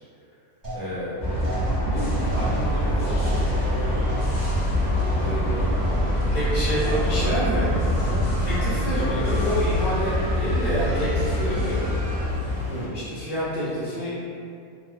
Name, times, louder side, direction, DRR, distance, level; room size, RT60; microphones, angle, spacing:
sound 1, 0.6-6.4 6.7-7.3 7.6-8.1 8.4-9.0 9.3-9.9, right 2 dB, 35° right, 1.2 m, -40 dB
voice 1, 0.7-1.2 1.7-3.9 5.2-6.2 6.9-8.2 12.7-13.0, equal, 85° left, -9 dB, 1.3 m, -33 dB
sound 2, 1.2-12.3, equal, 45° left, 0.6 m, -25 dB
sound 3, 1.9-12.9, left 3 dB, 55° right, 0.7 m, -31 dB
voice 2, 6.0-7.7 8.4-11.8 12.9-14.2, equal, 10° right, -13 dB, 0.6 m, -28 dB
2.9 x 2.0 x 2.3 m, 2.4 s
omnidirectional pair, 1.4 m